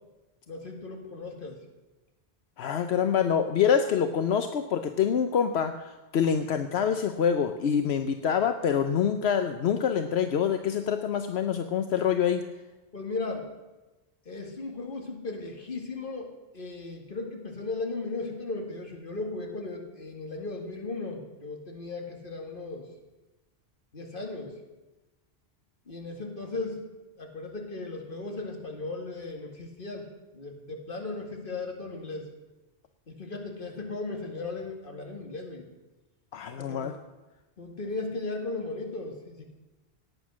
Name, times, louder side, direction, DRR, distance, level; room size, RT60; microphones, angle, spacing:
voice 1, 0.5-1.6 12.9-13.5 14.3-22.9 23.9-24.6 25.9-26.9 27.2-32.3 33.1-35.6 36.6-36.9 37.6-39.5, left 3 dB, 55° left, 2 dB, 2.3 m, -36 dB
voice 2, 2.6-12.4 36.3-36.9, left 7 dB, 80° left, 8 dB, 1.0 m, -26 dB
17.5 x 9.3 x 6.2 m, 1.1 s
omnidirectional pair, 1.1 m